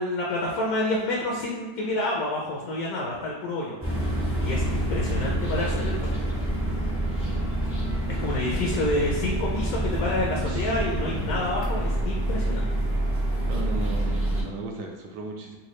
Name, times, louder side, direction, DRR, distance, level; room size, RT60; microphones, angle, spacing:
voice 1, 0.0-3.8 4.4-6.3 8.2-12.7, left 1 dB, 70° left, -3 dB, 0.9 m, -28 dB
sound 1, 3.8-14.4, right 1 dB, 15° right, 0.4 m, -27 dB
voice 2, 8.1-8.9 10.5-10.7 13.5-15.6, right 3 dB, 75° right, 1 dB, 1.2 m, -37 dB
4.0 x 2.3 x 3.0 m, 1.2 s
omnidirectional pair, 1.8 m